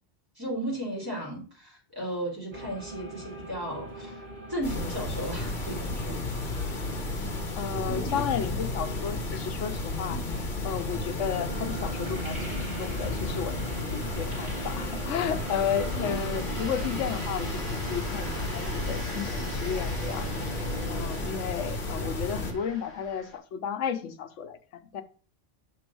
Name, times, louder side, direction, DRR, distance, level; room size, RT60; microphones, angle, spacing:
voice 1, 0.4-4.2 4.5-6.8, right 1 dB, 15° right, -5 dB, 3.1 m, -35 dB
sound 1, 2.5-21.0, right 1 dB, 40° right, 2.1 m, -42 dB
sound 2, 4.6-22.5, left 2 dB, 45° left, 1.3 m, -33 dB
voice 2, 7.6-10.2 10.6-20.3 20.9-24.6 24.9-25.0, left 8 dB, 85° left, 9 dB, 1.1 m, -33 dB
sound 3, 11.1-23.4, equal, ahead, 4.0 m, -43 dB
6.1 x 3.9 x 6.1 m, 0.41 s
omnidirectional pair, 1.2 m